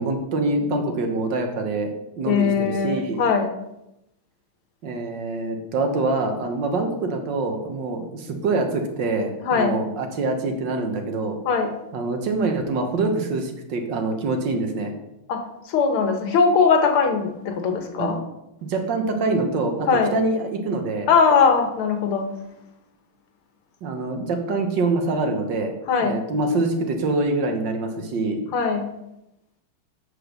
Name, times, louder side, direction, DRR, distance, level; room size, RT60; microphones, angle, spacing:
voice 1, 0.0-3.2 4.8-11.4 11.9-14.9 17.9-18.1 18.7-21.1 23.8-25.7 26.0-28.4, right 3 dB, 60° right, 4 dB, 1.7 m, -25 dB
voice 2, 2.3-3.5 9.5-9.7 11.5-11.7 15.3-15.4 15.7-18.2 19.9-20.1 21.1-22.3 25.9-26.2 28.5-28.8, left 5 dB, 85° left, 5 dB, 2.0 m, -20 dB
8.0 x 5.0 x 6.5 m, 0.87 s
omnidirectional pair, 2.3 m